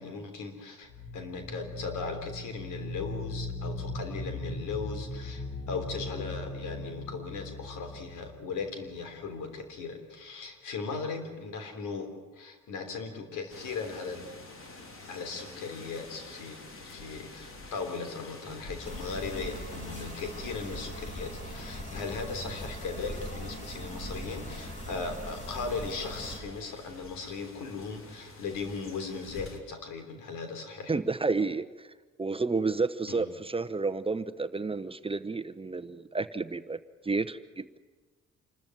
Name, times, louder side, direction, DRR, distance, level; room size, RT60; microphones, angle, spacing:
voice 1, 0.0-14.3 15.1-31.0 33.1-33.3, left 4 dB, 90° left, 6 dB, 3.5 m, -38 dB
sound 1, 0.8-9.5, left 2 dB, 60° left, 3.4 m, -39 dB
sound 2, 13.5-29.6, left 2 dB, 45° left, 3.2 m, -48 dB
sound 3, 18.8-26.4, equal, 25° left, 6.5 m, -40 dB
voice 2, 30.9-31.6 32.2-36.8 37.0-37.8, right 3 dB, 20° right, 11 dB, 0.9 m, -30 dB
27.0 x 13.5 x 9.3 m, 1.3 s
cardioid pair, 90°, 30 cm